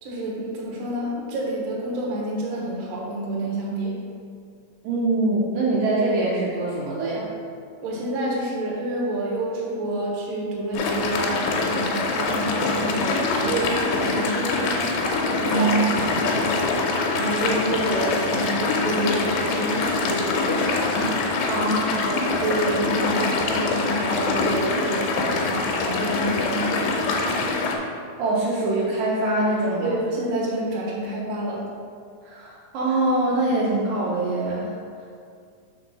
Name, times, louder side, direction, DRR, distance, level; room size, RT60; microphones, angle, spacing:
voice 1, 0.0-4.0 7.8-14.9 15.5-16.6 17.1-20.7 22.0-25.1 25.3-26.9 29.8-31.6, right 1 dB, 60° right, -4 dB, 1.9 m, -28 dB
voice 2, 4.8-7.3 15.4-15.8 21.5-22.1 28.2-30.0 32.2-34.7 35.0-35.1, right 2 dB, 75° right, -5 dB, 2.2 m, -23 dB
sound 1, 10.7-27.8, left 3 dB, 80° left, 2.5 m, -24 dB
5.0 x 4.5 x 6.0 m, 2.3 s
omnidirectional pair, 4.4 m